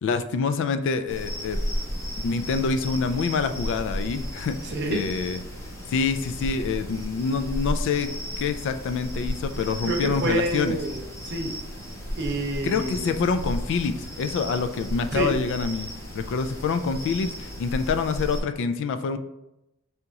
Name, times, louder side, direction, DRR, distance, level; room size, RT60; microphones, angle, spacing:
voice 1, 0.0-1.6 2.2-4.6 4.9-5.4 5.9-8.1 8.4-10.8 12.6-19.2, left 5 dB, 60° left, 10 dB, 0.3 m, -26 dB
sound 1, 1.1-18.4, equal, 15° left, 0.7 m, -34 dB
voice 2, 4.6-5.0 9.9-11.5 12.2-13.1 15.1-15.3, right 2 dB, 55° right, 2 dB, 0.7 m, -28 dB
3.5 x 2.9 x 3.9 m, 0.90 s
head